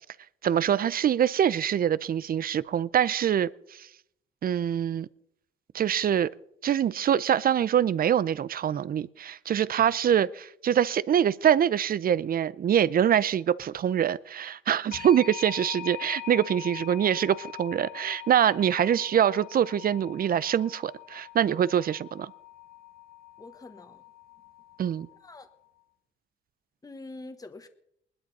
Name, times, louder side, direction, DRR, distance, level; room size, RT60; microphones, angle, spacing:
voice 1, 0.4-3.9 4.4-5.1 5.7-6.3 6.6-22.3 24.8-25.1, right 9 dB, 45° right, 0.5 m, -24 dB
sound 1, 14.9-25.5, left 12 dB, 50° left, 1.3 m, -43 dB
voice 2, 23.4-24.0 25.2-25.5 26.8-27.7, left 2 dB, 20° left, 1.3 m, -44 dB
20.0 x 12.0 x 4.2 m
cardioid pair, 90°, 20 cm